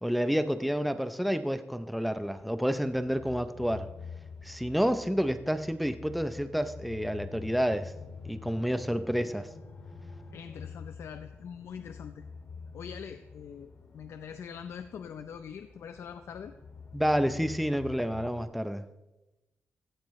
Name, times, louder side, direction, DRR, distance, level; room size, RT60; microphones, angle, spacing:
voice 1, 0.0-3.9 4.4-7.9 8.2-9.5 16.9-18.9, equal, ahead, 0.6 m, -29 dB
sound 1, 1.9-18.4, left 5 dB, 55° left, 2.3 m, -47 dB
voice 2, 10.3-12.2 12.7-16.5, left 7 dB, 75° left, 0.6 m, -43 dB
16.5 x 13.5 x 3.1 m
wide cardioid pair, 140°, 5 cm